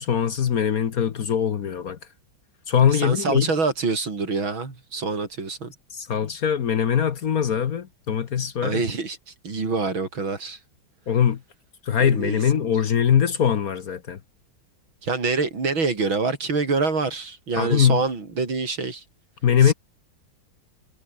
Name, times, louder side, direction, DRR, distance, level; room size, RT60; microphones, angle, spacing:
voice 1, 0.0-2.0 2.7-3.5 5.9-8.8 11.1-11.4 11.9-14.2 17.6-18.0 19.4-19.7, left 8 dB, 50° left, 1.3 m, -21 dB
voice 2, 2.9-5.7 8.6-9.2 9.4-10.6 12.0-12.7 15.0-19.0 19.6-19.7, right 4 dB, 80° right, 5.0 m, -26 dB
omnidirectional pair, 2.2 m